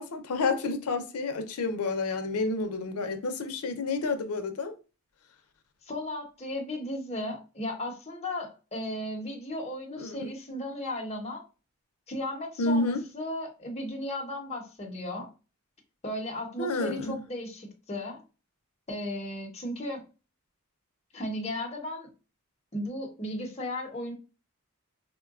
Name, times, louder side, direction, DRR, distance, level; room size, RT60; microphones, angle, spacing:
voice 1, 0.0-4.7 9.9-10.3 12.6-13.0 16.6-17.2, left 3 dB, 80° left, 0.5 m, -30 dB
voice 2, 5.8-11.4 12.1-15.3 16.0-18.2 18.9-20.0 21.1-22.1 22.7-24.1, left 1 dB, 30° left, 0.8 m, -35 dB
3.7 x 2.2 x 2.3 m
head